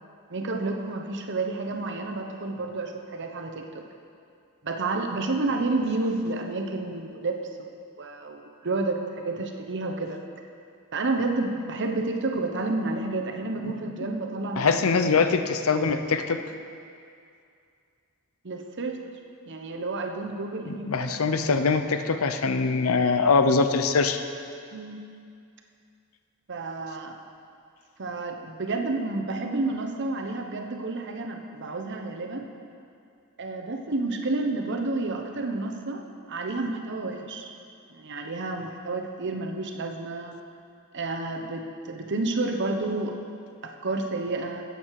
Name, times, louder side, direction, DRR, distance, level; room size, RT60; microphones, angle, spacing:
voice 1, 0.3-3.8 4.6-7.7 8.0-10.2 10.9-14.8 18.4-19.0 19.5-21.3 24.7-25.0 26.5-27.2 28.0-32.5 33.4-36.0 36.3-37.5 37.9-40.3 40.9-43.2 43.6-44.6, right 2 dB, 55° right, 3 dB, 1.0 m, -30 dB
voice 2, 14.6-16.4 20.7-24.2, left 4 dB, 75° left, 8 dB, 0.7 m, -23 dB
13.5 x 8.5 x 4.8 m, 2.4 s
head